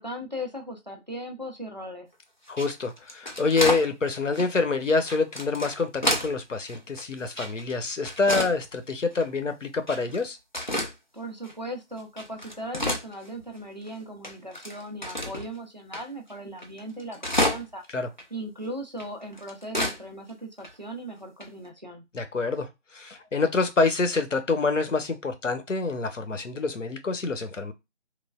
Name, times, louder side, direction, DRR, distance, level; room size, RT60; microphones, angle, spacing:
voice 1, 0.0-2.1 11.1-17.8 18.3-22.0, equal, 40° right, 2 dB, 0.5 m, -38 dB
voice 2, 2.5-10.4 17.9-18.1 22.1-22.7 22.9-27.7, left 4 dB, 90° left, 7 dB, 0.8 m, -26 dB
sound 1, 2.5-3.9 4.3-4.5 5.1-6.3 6.7-7.7 8.0-8.6 9.1-9.2 9.9-10.2 10.5-10.9 11.4-11.5 12.0-13.6 13.9-14.0 14.2-15.5 15.9-16.0 16.3-16.4 16.6-17.9 18.2-18.3 19.0-20.0 20.3-20.4 20.6-20.7 21.4-21.7, left 1 dB, 40° left, 0.4 m, -29 dB
3.1 x 2.1 x 2.2 m, 0.22 s
figure-of-eight pair, 165°, 36 cm